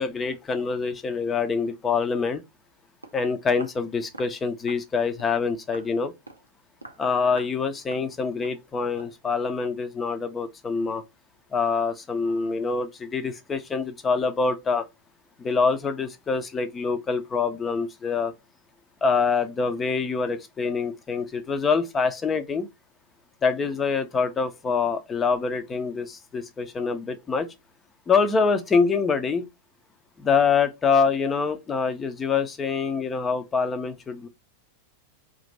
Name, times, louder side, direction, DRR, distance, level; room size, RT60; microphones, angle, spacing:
voice 1, 0.0-2.4 3.1-6.1 7.0-11.0 11.5-14.8 15.4-18.3 19.0-22.7 23.4-27.5 28.1-29.5 30.2-34.3, left 5 dB, 20° left, 0.6 m, -25 dB
Walk footsteps, 3.0-3.2 3.6-3.8 4.1-4.4 4.7-4.9 5.2-5.4 5.7-5.9 6.3-6.5 6.8-7.0 7.3-7.6 7.9-8.1 8.4-8.6 9.0-9.2, right 2 dB, 85° right, 0.5 m, -44 dB
2.9 x 2.5 x 3.9 m
figure-of-eight pair, 90°, 0 cm